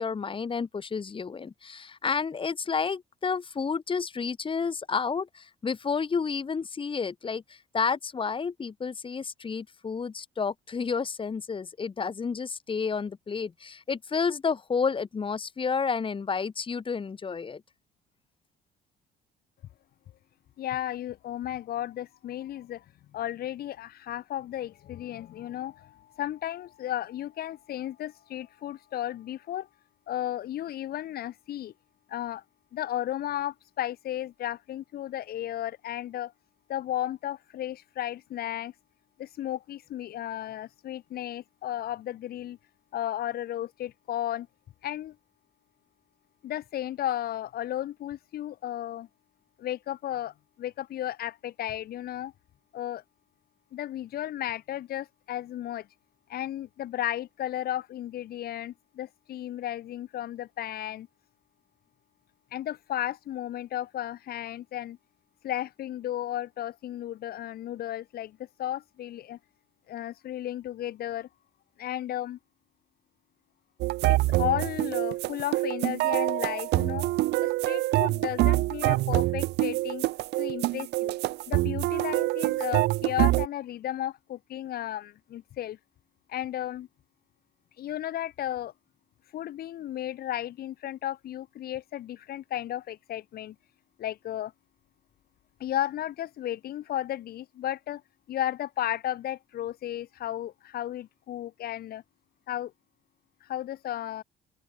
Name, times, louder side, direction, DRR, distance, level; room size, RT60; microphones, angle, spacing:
voice 1, 0.0-17.6, left 5 dB, 30° left, 7.5 m, -30 dB
voice 2, 20.6-22.8 23.1-29.7 30.1-31.7 32.1-32.4 32.7-36.3 36.7-38.7 39.2-42.6 42.9-44.5 44.8-45.2 46.4-49.1 49.6-52.3 52.7-53.0 53.7-55.9 56.3-61.1 62.5-65.0 65.4-69.4 69.9-71.3 71.8-72.4 74.1-77.1 77.4-81.1 81.5-85.8 86.3-86.9 87.8-88.7 89.3-93.6 94.0-94.5 95.6-98.0 98.3-102.0 102.5-102.7 103.4-104.2, left 12 dB, 65° left, 7.5 m, -34 dB
sound 1, 73.8-83.5, right 18 dB, 85° right, 3.2 m, -26 dB
open air
cardioid pair, 110°, 17 cm